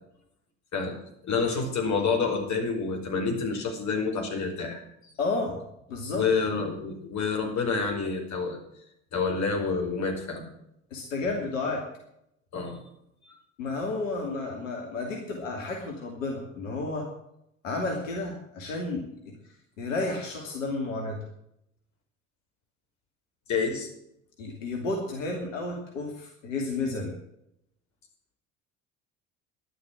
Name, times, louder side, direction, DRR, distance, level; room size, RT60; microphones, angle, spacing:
voice 1, 1.2-5.1 6.1-8.6 9.1-10.4 12.5-12.8 23.5-23.9, left 4 dB, 45° left, 3 dB, 5.1 m, -28 dB
voice 2, 5.2-5.6 5.9-6.2 10.9-11.8 13.6-17.1 17.6-19.2 19.8-21.2 24.4-27.1, left 3 dB, 75° left, 1 dB, 2.9 m, -31 dB
12.5 x 11.5 x 6.3 m, 0.78 s
hypercardioid pair, 65°, 38 cm